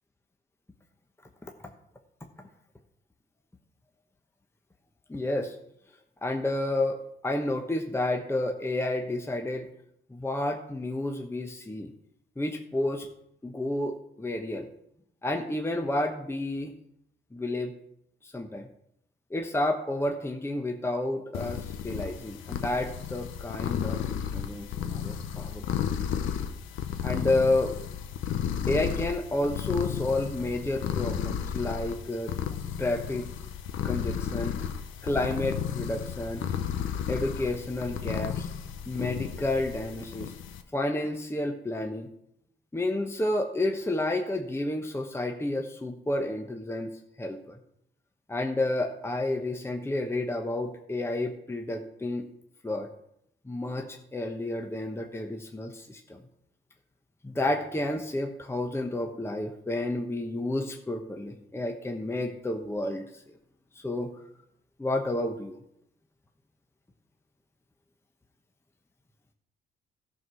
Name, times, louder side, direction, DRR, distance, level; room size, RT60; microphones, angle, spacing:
voice 1, 5.1-5.5 6.2-9.7 10.1-11.9 12.4-13.1 13.4-14.7 15.2-16.7 17.3-17.7 18.2-18.7 19.3-25.6 27.0-27.7 28.7-32.3 32.8-33.3 33.8-34.6 35.0-36.4 37.1-38.5 38.9-40.3 40.7-42.1 42.7-46.9 47.2-47.6 48.3-52.3 52.6-52.9 53.4-56.2 57.2-63.2 63.8-64.1 64.8-65.6, left 1 dB, 10° left, 3 dB, 1.0 m, -30 dB
sound 1, 21.3-40.6, left 8 dB, 85° left, 0.9 m, -33 dB
13.5 x 4.7 x 6.3 m, 0.75 s
cardioid pair, 90°, 20 cm